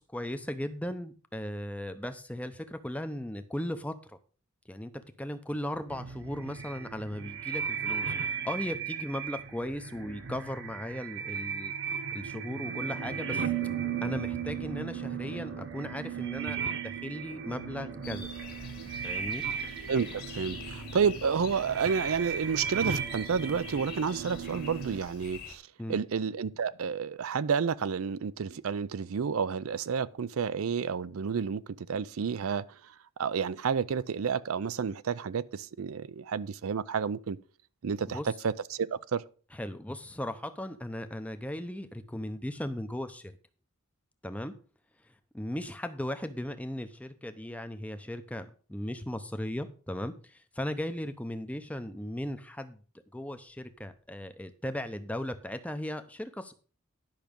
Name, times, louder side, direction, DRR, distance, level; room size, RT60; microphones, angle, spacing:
voice 1, 0.0-4.1 4.7-11.7 12.1-13.5 14.0-16.6 16.8-18.3 19.0-19.4 25.8-26.0 38.1-38.3 39.5-43.4 44.2-44.5 45.3-52.8 53.1-56.5, left 1 dB, 5° left, 0.6 m, -37 dB
sound 1, 5.9-25.0, right 7 dB, 55° right, 1.1 m, -36 dB
sound 2, 18.0-25.6, left 5 dB, 45° left, 1.9 m, -46 dB
voice 2, 19.9-25.6 25.9-32.6 33.2-37.4 37.8-39.2, right 6 dB, 75° right, 0.4 m, -30 dB
10.5 x 6.0 x 5.2 m
head